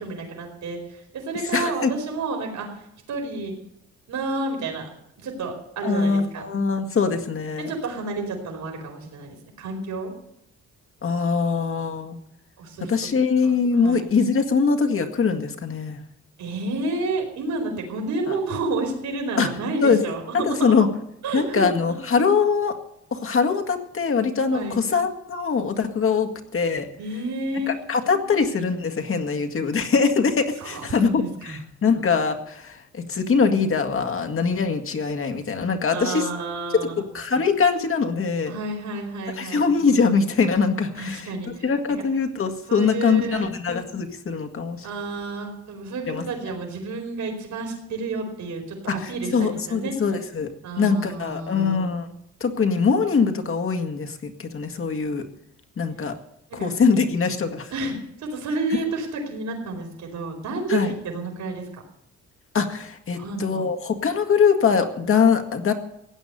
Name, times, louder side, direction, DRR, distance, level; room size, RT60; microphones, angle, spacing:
voice 1, 0.0-2.7 3.1-3.5 4.1-4.9 5.2-6.5 7.6-10.1 12.6-12.9 13.8-14.1 16.4-20.8 21.2-21.7 24.5-24.8 27.0-27.7 28.0-28.2 30.6-31.6 35.9-37.0 38.5-39.6 41.0-41.6 42.7-43.5 44.8-49.9 50.6-51.8 56.5-56.8 57.7-61.7 63.1-63.7, right 3 dB, 70° right, 2 dB, 4.6 m, -30 dB
voice 2, 1.5-1.9 5.8-7.7 11.0-12.2 12.8-16.0 18.3-18.4 19.4-19.5 19.8-20.0 20.3-20.9 21.3-22.7 23.1-26.9 27.7-36.3 37.1-38.5 39.4-44.9 46.1-46.3 48.9-50.5 50.8-52.1 52.4-55.2 55.8-56.1 56.6-57.7 60.7-60.9 62.5-65.7, left 5 dB, 45° left, 6 dB, 1.9 m, -22 dB
16.5 x 9.4 x 6.8 m, 0.78 s
cardioid pair, 90°, 30 cm